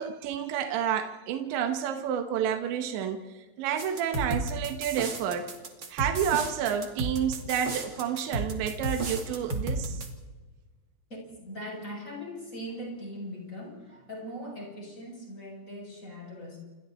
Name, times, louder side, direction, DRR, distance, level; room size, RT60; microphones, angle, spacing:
voice 1, 0.0-5.5 5.9-10.0, right 8 dB, 80° right, 6 dB, 3.5 m, -30 dB
sound 1, 3.8-10.1, right 3 dB, 35° right, 1.9 m, -33 dB
voice 2, 11.1-16.6, equal, 15° left, -2 dB, 8.0 m, -40 dB
29.0 x 25.5 x 4.3 m, 1.3 s
omnidirectional pair, 5.2 m